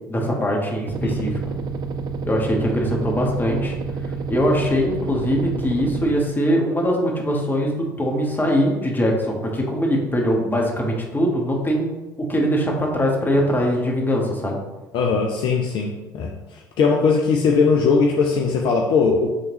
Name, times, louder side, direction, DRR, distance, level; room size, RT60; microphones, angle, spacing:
voice 1, 0.1-1.5 2.3-3.7 4.3-11.9 12.2-14.6, equal, 20° left, 0 dB, 1.5 m, -22 dB
sound 1, 0.9-6.1, right 4 dB, 40° right, 0.5 m, -29 dB
voice 2, 1.0-1.4 14.9-19.3, left 5 dB, 50° left, 1 dB, 0.6 m, -20 dB
8.7 x 3.6 x 3.0 m, 1.1 s
figure-of-eight pair, 60°, 11 cm